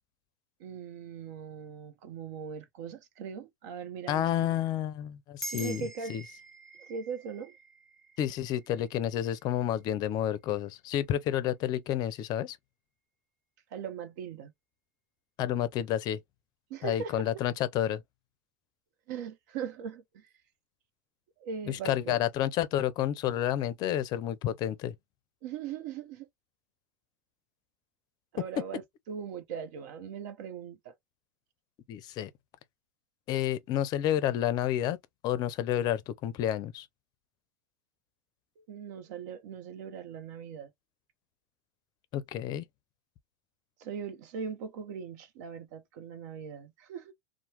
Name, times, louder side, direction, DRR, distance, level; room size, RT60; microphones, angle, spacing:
voice 1, 0.6-4.5 5.5-6.1 6.8-7.5 13.7-14.5 16.7-17.3 19.1-20.3 21.4-22.2 25.4-26.3 28.3-28.8 29.1-30.9 38.6-40.7 43.8-47.1, right 7 dB, 65° right, 0.8 m, -40 dB
voice 2, 4.1-6.2 8.2-12.6 15.4-16.2 16.8-18.0 21.7-24.9 31.9-32.3 33.3-35.0 35.2-36.9 42.1-42.7, left 11 dB, 40° left, 0.5 m, -30 dB
sound 1, 5.4-10.1, right 2 dB, ahead, 0.8 m, -46 dB
3.0 x 2.1 x 2.8 m
hypercardioid pair, 105°, 10 cm